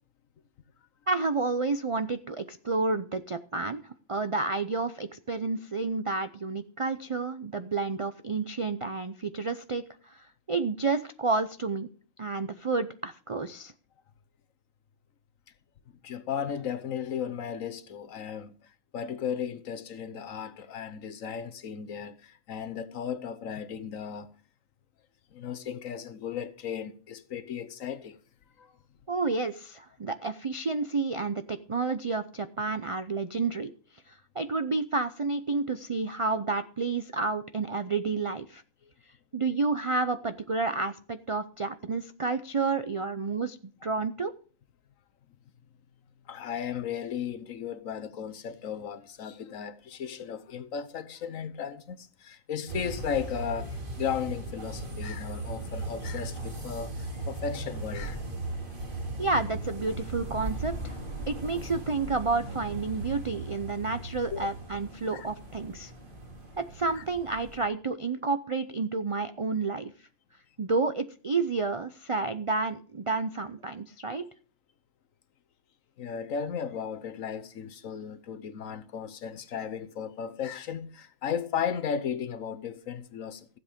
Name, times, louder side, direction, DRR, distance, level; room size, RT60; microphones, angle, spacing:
voice 1, 1.1-11.9 12.2-13.7 29.1-38.6 39.3-44.3 59.2-61.0 61.3-65.9 66.6-70.1 70.6-74.3, right 3 dB, 55° right, 0.3 m, -30 dB
voice 2, 16.0-24.3 25.3-28.2 28.6-28.7 46.3-58.2 64.3-64.5 65.1-65.3 66.9-67.0 76.0-83.6, left 7 dB, 75° left, 1.3 m, -35 dB
sound 1, 52.7-67.6, right 2 dB, 40° right, 2.2 m, -38 dB
15.5 x 7.9 x 5.1 m
omnidirectional pair, 1.4 m